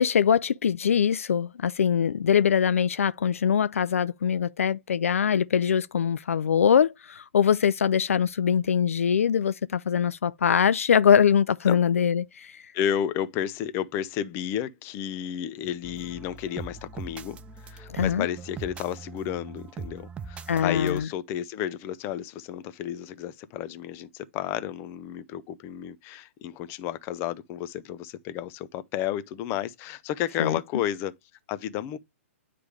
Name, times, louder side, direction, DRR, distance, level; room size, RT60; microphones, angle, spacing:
voice 1, 0.0-12.6 17.9-18.3 20.5-21.1 30.4-30.6, left 7 dB, 80° left, 0.4 m, -23 dB
voice 2, 12.7-17.4 17.6-31.1 31.5-32.0, left 10 dB, 35° left, 0.7 m, -32 dB
sound 1, 15.8-21.1, right 5 dB, 15° right, 0.5 m, -41 dB
9.5 x 3.4 x 3.4 m
hypercardioid pair, 125°, 7 cm